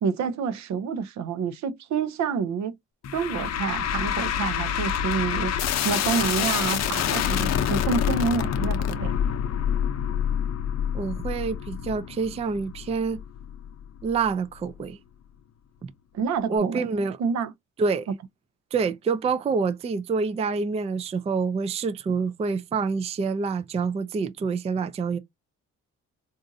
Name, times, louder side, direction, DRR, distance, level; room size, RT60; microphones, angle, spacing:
voice 1, 0.0-2.8 3.1-5.5 5.8-9.2 16.1-16.9 17.2-17.5 18.1-18.2, right 6 dB, 65° right, 0.6 m, -28 dB
sound 1, 3.0-14.3, left 9 dB, 60° left, 0.6 m, -27 dB
voice 2, 10.9-13.2 14.0-15.0 15.8-15.9 16.5-17.2 17.8-18.1 18.7-25.2, right 5 dB, 20° right, 0.3 m, -27 dB
4.0 x 2.5 x 2.6 m
cardioid pair, 90°, 30 cm